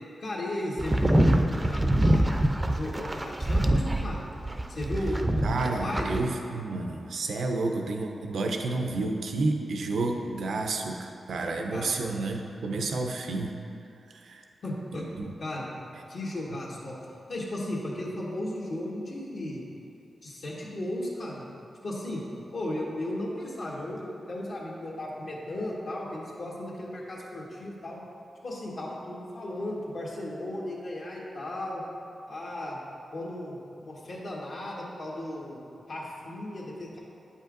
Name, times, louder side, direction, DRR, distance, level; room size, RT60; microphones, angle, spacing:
voice 1, 0.2-2.3 2.6-4.3 4.7-5.4 5.8-6.2 11.7-12.0 14.6-15.1 15.4-15.7 16.1-17.0 17.3-19.6 20.2-21.4 21.8-22.2 22.5-28.0 28.4-31.8 32.3-32.8 33.1-35.6 35.9-37.0, left 1 dB, 70° left, -5 dB, 1.3 m, -35 dB
sound 1, 0.8-6.2, right 1 dB, 20° right, 0.4 m, -25 dB
voice 2, 5.4-13.5 14.2-14.4 15.2-15.3, right 3 dB, 80° right, 3 dB, 0.5 m, -30 dB
8.4 x 5.4 x 2.5 m, 2.7 s
cardioid pair, 60°, 0 cm